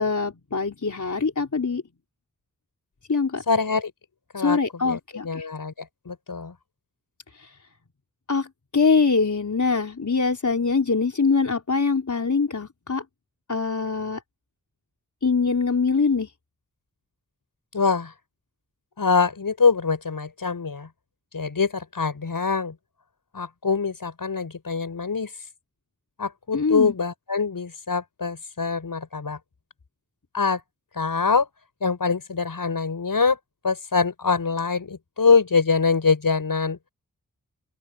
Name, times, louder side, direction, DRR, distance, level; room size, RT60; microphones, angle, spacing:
voice 1, 0.0-1.8 3.1-3.4 4.4-5.5 7.4-7.5 8.3-8.5 8.7-13.0 13.5-14.2 15.2-16.3 26.5-26.9, left 4 dB, 60° left, 4.2 m, -23 dB
voice 2, 3.5-3.9 4.3-4.6 4.8-5.7 6.1-6.5 17.7-18.1 19.0-20.9 21.3-22.7 23.3-25.3 26.2-29.4 30.3-30.6 31.0-31.5 31.8-33.4 33.6-36.8, left 5 dB, 80° left, 5.5 m, -24 dB
open air
wide cardioid pair, 70°, 34 cm